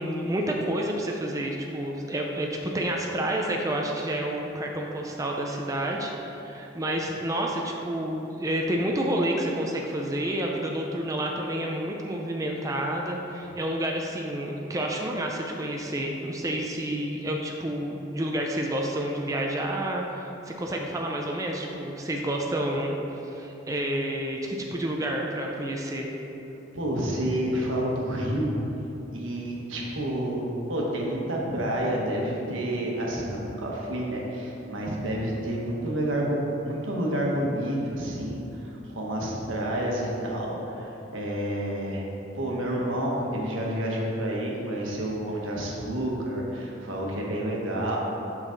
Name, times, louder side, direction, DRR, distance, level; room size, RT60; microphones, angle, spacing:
voice 1, 0.0-6.1 6.4-23.0 23.2-26.1, right 1 dB, 15° right, 0 dB, 0.4 m, -29 dB
voice 2, 26.7-28.6 29.1-42.0 42.3-48.0, right 1 dB, 90° right, -2 dB, 1.2 m, -29 dB
6.3 x 6.0 x 3.9 m, 3.0 s
head